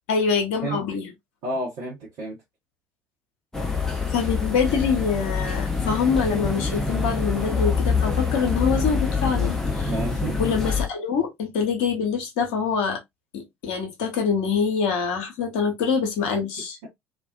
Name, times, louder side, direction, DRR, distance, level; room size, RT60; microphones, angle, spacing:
voice 1, 0.1-1.1 4.1-9.9 10.4-13.0 13.3-16.8, left 6 dB, 60° left, 0.8 m, -25 dB
voice 2, 1.4-2.3 9.9-10.4, right 2 dB, 55° right, 0.9 m, -30 dB
sound 1, 3.5-10.9, left 4 dB, 5° left, 0.7 m, -25 dB
2.5 x 2.2 x 2.3 m
figure-of-eight pair, 55°, 7 cm